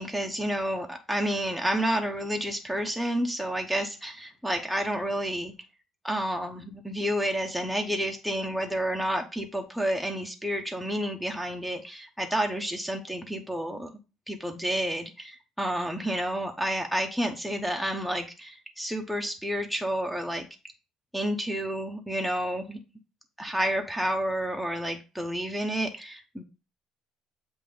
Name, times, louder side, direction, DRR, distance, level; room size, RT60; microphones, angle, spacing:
voice 1, 0.0-5.5 6.0-13.9 14.3-20.5 21.1-22.8 23.4-26.4, equal, ahead, 4 dB, 0.9 m, -30 dB
7.5 x 2.6 x 5.0 m, 0.31 s
cardioid pair, 105°, 0 cm